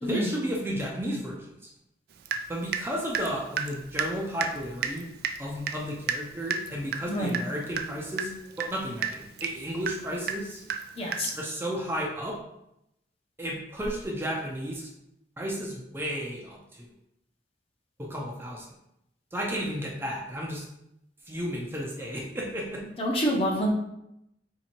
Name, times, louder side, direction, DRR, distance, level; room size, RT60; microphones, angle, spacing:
voice 1, 0.0-1.5 2.5-5.1 5.4-10.6 11.3-12.4 13.4-14.9 15.4-16.9 18.0-18.7 19.3-20.6 21.3-22.8, equal, 15° right, -2 dB, 0.6 m, -33 dB
Water tap faucet / Drip, 2.3-2.9 3.1-11.5, right 6 dB, 60° right, 0.3 m, -33 dB
voice 2, 7.1-7.4 11.0-11.3 23.0-23.7, equal, 35° left, -1 dB, 0.8 m, -27 dB
3.6 x 2.9 x 4.4 m, 0.82 s
head